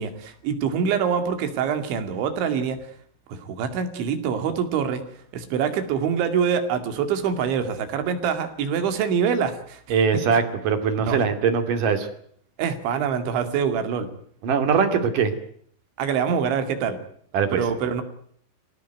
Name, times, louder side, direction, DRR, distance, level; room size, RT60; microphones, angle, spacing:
voice 1, 0.0-2.8 3.3-5.0 5.3-9.8 11.0-11.2 12.6-14.1 16.0-17.0 17.5-18.0, right 7 dB, 75° right, 8 dB, 4.6 m, -25 dB
voice 2, 9.9-12.1 14.4-15.3 17.3-17.6, right 6 dB, 50° right, 7 dB, 3.7 m, -21 dB
25.5 x 17.0 x 9.2 m, 0.63 s
omnidirectional pair, 5.4 m